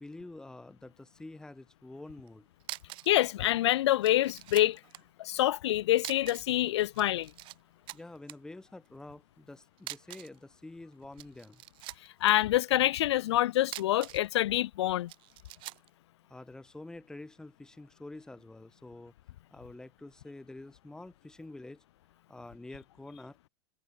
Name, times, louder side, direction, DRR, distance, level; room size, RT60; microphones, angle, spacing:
voice 1, 0.0-2.5 7.9-11.6 16.3-19.1 19.5-21.8 22.3-23.4, left 2 dB, 5° left, 3.2 m, -47 dB
sound 1, 2.3-2.4 2.6-3.2 3.4-3.5 4.0-5.0 6.0-6.6 6.8-7.6 7.9-8.3 9.8-10.4 11.0-12.3 13.6-14.3 15.1-15.9, right 20 dB, 35° right, 2.8 m, -44 dB
voice 2, 3.1-4.8 5.2-7.3 12.2-15.1, left 14 dB, 85° left, 0.9 m, -26 dB
supercardioid pair, 160°, 14 cm